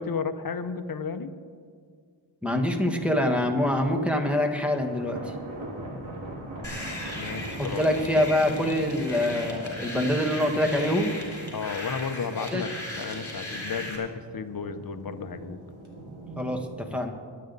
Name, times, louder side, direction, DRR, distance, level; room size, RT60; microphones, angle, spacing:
voice 1, 0.0-1.3 7.2-7.8 11.5-15.6, left 5 dB, 50° left, 9 dB, 0.8 m, -33 dB
voice 2, 2.4-5.3 7.6-11.1 12.5-12.6 16.4-17.1, left 1 dB, 5° right, 3 dB, 1.4 m, -25 dB
sound 1, 4.7-16.6, right 1 dB, 85° right, 2.2 m, -40 dB
sound 2, 6.6-14.0, left 1 dB, 30° left, 4.0 m, -38 dB
22.0 x 8.6 x 4.0 m, 2.1 s
wide cardioid pair, 95°, 46 cm